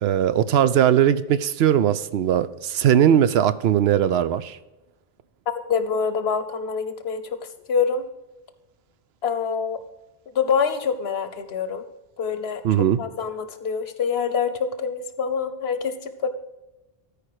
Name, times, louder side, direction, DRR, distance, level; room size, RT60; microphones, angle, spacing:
voice 1, 0.0-4.6 12.6-13.0, right 10 dB, 85° right, 14 dB, 0.8 m, -19 dB
voice 2, 5.7-7.4 7.7-8.0 9.2-9.8 10.3-11.8 12.2-12.6 13.0-16.3, left 6 dB, 85° left, 10 dB, 1.1 m, -25 dB
13.0 x 5.0 x 4.8 m, 1.0 s
omnidirectional pair, 1.0 m